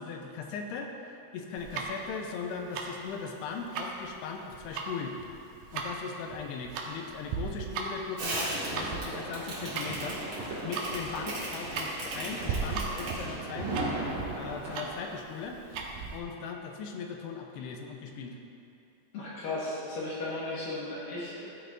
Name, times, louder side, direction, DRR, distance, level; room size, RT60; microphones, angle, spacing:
voice 1, 0.0-5.2 5.7-10.2 10.6-13.9 14.4-15.6 16.1-18.4, left 5 dB, 85° left, 2 dB, 2.7 m, -39 dB
Tick-tock, 1.6-16.2, right 5 dB, 75° right, 2.4 m, -38 dB
Fireworks, 8.2-15.0, right 2 dB, 45° right, 1.9 m, -36 dB
voice 2, 19.1-21.5, left 2 dB, 65° left, -8 dB, 2.8 m, -35 dB
14.5 x 8.9 x 2.5 m, 2.8 s
omnidirectional pair, 4.9 m